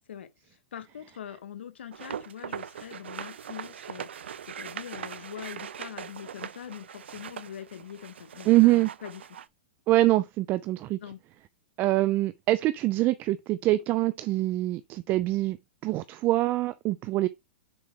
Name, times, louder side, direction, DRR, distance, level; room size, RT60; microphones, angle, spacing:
voice 1, 0.0-9.2 11.0-11.2, left 9 dB, 85° left, 1.1 m, -43 dB
sound 1, 1.9-9.5, right 8 dB, 90° right, 0.5 m, -41 dB
voice 2, 8.5-8.9 9.9-11.0 11.8-15.6 15.8-17.3, right 17 dB, 35° right, 0.4 m, -24 dB
6.9 x 4.9 x 3.4 m
hypercardioid pair, 130°, 6 cm